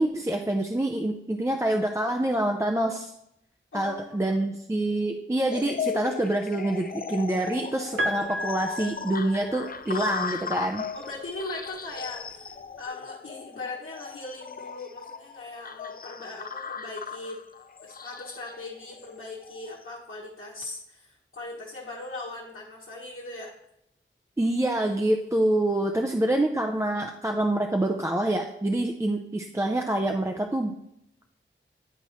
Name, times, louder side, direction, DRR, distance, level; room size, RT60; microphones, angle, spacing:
voice 1, 0.0-3.1 3.7-10.8 24.4-30.8, right 1 dB, 15° right, 3 dB, 0.5 m, -26 dB
voice 2, 3.7-4.4 10.9-17.4 17.8-23.5 25.9-26.0, left 2 dB, 75° left, -6 dB, 1.3 m, -39 dB
sound 1, 5.5-19.8, left 6 dB, 45° left, 0.4 m, -37 dB
Piano, 8.0-10.0 11.3-11.4, equal, 75° right, 0.5 m, -33 dB
10.0 x 4.2 x 3.0 m, 0.79 s
wide cardioid pair, 65°, 21 cm